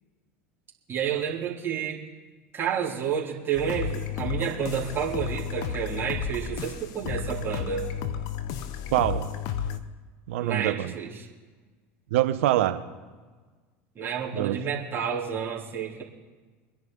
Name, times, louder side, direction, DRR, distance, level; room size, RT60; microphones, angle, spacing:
voice 1, 0.9-2.0 2.5-7.9 10.4-11.2 13.9-16.0, right 7 dB, 35° right, -4 dB, 3.2 m, -30 dB
sound 1, 3.5-9.8, left 7 dB, 60° left, 1.0 m, -33 dB
voice 2, 8.9-9.3 10.3-10.9 12.1-12.8 14.3-14.6, right 14 dB, 75° right, 11 dB, 1.0 m, -24 dB
24.5 x 10.5 x 3.8 m, 1.4 s
hypercardioid pair, 85°, 7 cm